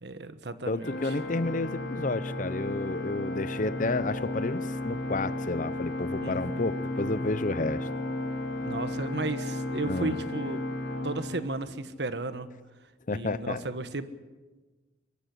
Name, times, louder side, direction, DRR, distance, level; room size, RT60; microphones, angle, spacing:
voice 1, 0.0-1.1 6.2-6.4 8.6-10.6 11.0-12.5 13.1-14.1, right 2 dB, 75° right, 11 dB, 1.4 m, -34 dB
voice 2, 0.7-7.9 9.8-10.2 13.1-13.6, left 2 dB, 50° left, 16 dB, 0.8 m, -31 dB
Organ, 0.8-12.0, left 2 dB, 80° left, 2.5 m, -34 dB
23.0 x 14.5 x 10.0 m, 1.3 s
head